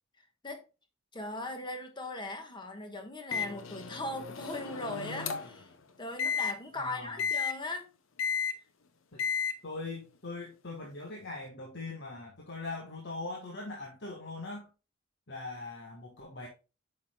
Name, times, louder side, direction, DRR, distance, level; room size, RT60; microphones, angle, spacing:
voice 1, 1.1-5.7 6.0-7.9, left 2 dB, 25° left, 1.3 m, -39 dB
Microwave oven, 3.3-5.6 6.2-6.5 7.2-7.5 8.2-8.5 9.2-9.5, left 6 dB, 80° left, 0.8 m, -33 dB
voice 2, 6.7-7.2 9.1-9.2 9.6-14.7 15.3-16.5, left 3 dB, 60° left, 1.4 m, -41 dB
8.5 x 5.7 x 2.2 m
head